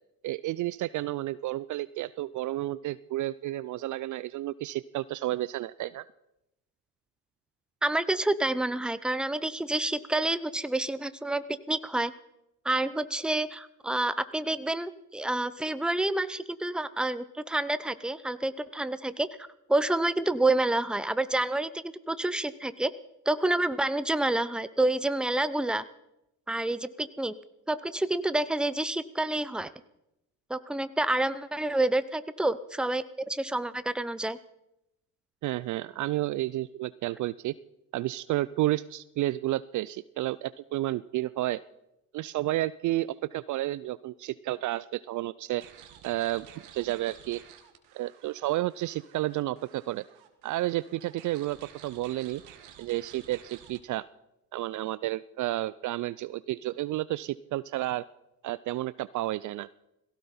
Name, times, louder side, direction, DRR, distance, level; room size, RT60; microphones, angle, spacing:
voice 1, 0.2-6.0 35.4-37.5 37.9-41.6 42.1-45.7 46.0-46.5 46.7-47.4 47.9-50.0 50.4-52.4 52.8-54.1 54.5-58.0 58.4-59.7, right 16 dB, 45° right, 18 dB, 0.5 m, -31 dB
voice 2, 7.8-12.1 12.6-19.3 19.7-22.9 23.3-25.8 26.5-27.3 27.7-29.7 30.5-34.4, right 2 dB, ahead, 14 dB, 0.8 m, -28 dB
sound 1, 45.6-53.8, right 10 dB, 65° right, 2.0 m, -52 dB
19.0 x 17.0 x 4.4 m, 0.88 s
hypercardioid pair, 65°, 43 cm